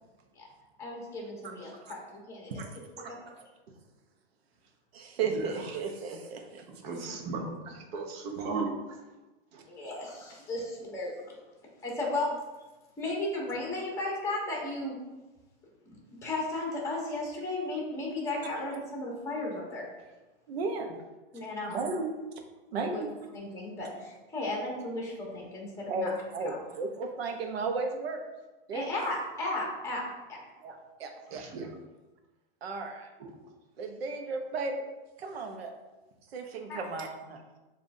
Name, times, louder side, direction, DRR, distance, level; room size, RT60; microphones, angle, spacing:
voice 1, 0.8-2.5 3.0-3.3 6.9-7.0 9.7-11.3 11.8-12.3 13.0-14.9 16.2-19.8 21.3-21.8 22.8-23.0 23.3-26.1 26.4-26.6 28.7-30.4 36.7-36.8, left 2 dB, 10° left, -2 dB, 1.1 m, -35 dB
voice 2, 4.9-6.7 20.5-21.0 21.7-22.1 22.7-23.1 25.9-28.2 28.7-28.9 30.6-31.6 32.6-33.1 33.8-34.8 35.2-35.7 36.3-37.4, right 4 dB, 90° right, 4 dB, 0.9 m, -34 dB
voice 3, 6.7-9.0 9.5-9.6 31.3-31.8 33.2-33.4, right 3 dB, 40° right, 2 dB, 0.8 m, -37 dB
7.0 x 2.6 x 2.6 m, 1.1 s
supercardioid pair, 145°, 30 cm